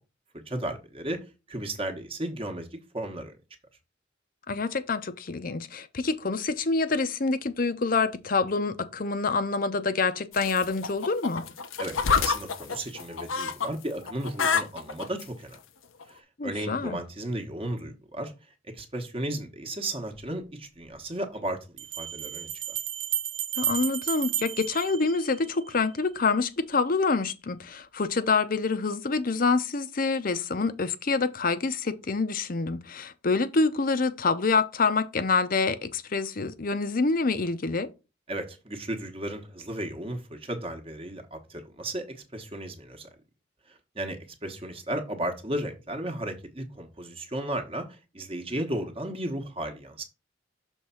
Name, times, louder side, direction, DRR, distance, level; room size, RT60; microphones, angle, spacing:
voice 1, 0.5-1.2 1.5-3.3 11.8-15.6 16.1-18.3 18.6-22.8 38.3-43.1 43.7-50.0, right 1 dB, 30° right, 1.1 m, -34 dB
voice 2, 4.5-11.4 16.4-17.0 23.6-37.9, left 4 dB, 45° left, 0.6 m, -26 dB
sound 1, 10.3-13.7 14.0-15.2 16.0-16.1, left 5 dB, 90° left, 0.8 m, -28 dB
sound 2, 20.2-20.3 21.8-25.7, right 10 dB, 65° right, 0.9 m, -32 dB
6.4 x 3.5 x 5.6 m
head